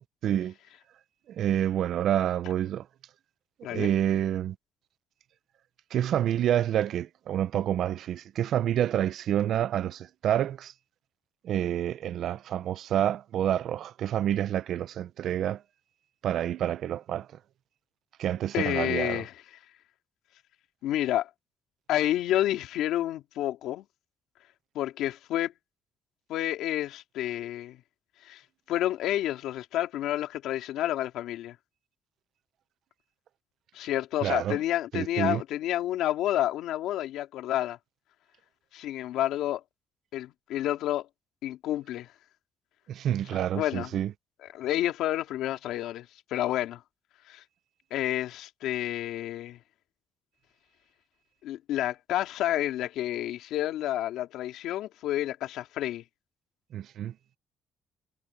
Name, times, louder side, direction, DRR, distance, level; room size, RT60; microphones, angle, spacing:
voice 1, 0.2-0.5 1.3-2.9 3.7-4.6 5.9-10.7 11.4-15.6 16.2-17.3 18.2-19.2 34.2-34.6 34.9-35.4 42.9-44.1 56.7-57.1, right 11 dB, 50° right, 0.6 m, -28 dB
voice 2, 18.5-19.3 20.8-21.3 21.9-23.8 24.7-25.5 26.3-27.8 28.2-28.4 28.7-31.6 33.7-37.8 38.7-39.6 40.1-41.1 41.4-42.1 43.5-44.0 44.4-46.8 47.2-47.4 47.9-49.6 51.4-56.0, left 13 dB, 75° left, 2.9 m, -29 dB
cardioid pair, 175°, 0 cm